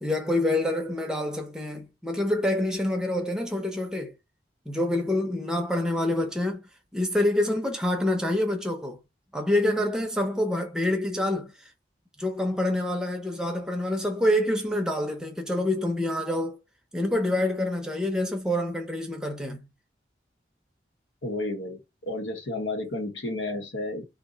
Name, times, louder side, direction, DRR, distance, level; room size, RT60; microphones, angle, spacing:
voice 1, 0.0-4.1 4.7-9.0 9.3-11.7 12.2-16.6 16.9-19.7, left 1 dB, 5° right, 0.6 m, -27 dB
voice 2, 21.2-24.1, left 2 dB, 85° left, 0.8 m, -32 dB
2.5 x 2.1 x 3.7 m
head